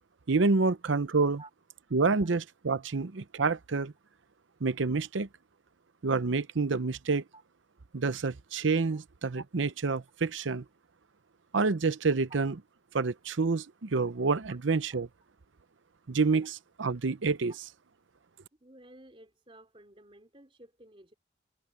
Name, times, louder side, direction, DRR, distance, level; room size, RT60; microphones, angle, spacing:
voice 1, 0.3-1.4 1.9-3.9 4.6-5.3 6.0-7.2 7.9-10.6 11.5-12.5 12.9-15.1 16.1-17.5, right 4 dB, 80° right, 0.7 m, -28 dB
voice 2, 18.6-21.1, right 1 dB, 30° right, 3.7 m, -54 dB
head